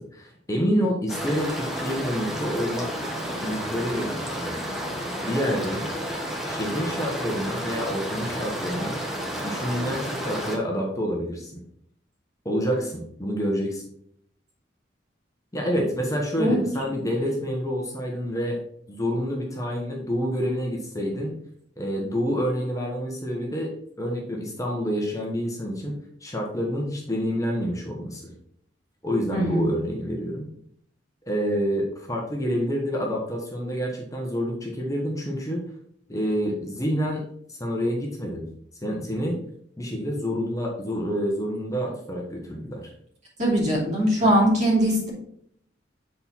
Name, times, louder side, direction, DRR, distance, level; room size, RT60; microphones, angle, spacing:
voice 1, 0.0-2.9 3.4-4.6 5.2-5.8 6.4-9.0 9.4-11.5 12.4-13.8 15.5-18.6 18.9-21.3 21.8-23.7 24.0-25.9 26.2-28.3 29.0-30.5 31.3-35.6 36.1-37.2 37.5-38.5 38.8-39.4 39.8-42.9 44.2-44.3, equal, 20° left, -1 dB, 1.1 m, -28 dB
sound 1, 1.1-10.6, equal, ahead, 1.3 m, -31 dB
voice 2, 29.3-29.7 43.4-45.1, equal, 40° right, -4 dB, 3.1 m, -21 dB
7.9 x 4.4 x 4.2 m, 0.68 s
head